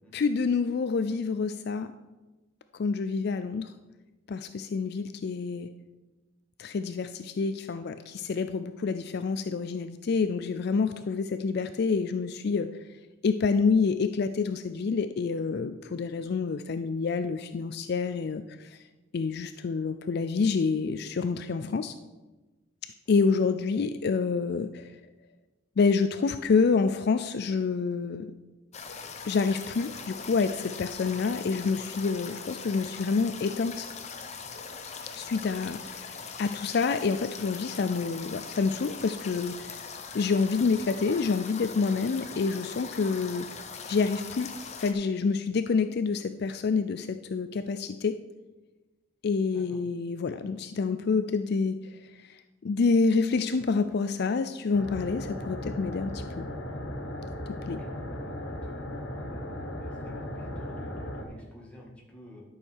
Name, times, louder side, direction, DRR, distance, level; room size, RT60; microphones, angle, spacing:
voice 1, 0.1-1.9 2.7-3.7 4.3-5.7 6.6-12.7 13.2-18.8 19.1-21.9 23.1-25.0 25.8-28.3 29.2-33.9 35.1-39.7 40.1-43.5 43.9-44.5 44.8-48.2 49.2-56.4 57.5-57.8, left 4 dB, 55° left, 10 dB, 0.4 m, -28 dB
sound 1, 28.7-44.9, left 5 dB, 35° left, 0.9 m, -41 dB
sound 2, 54.7-61.2, left 1 dB, 90° left, 1.7 m, -37 dB
voice 2, 57.7-58.4 58.6-58.9 59.3-62.4, left 1 dB, 5° left, -4 dB, 2.2 m, -51 dB
11.5 x 6.4 x 4.7 m, 1.2 s
head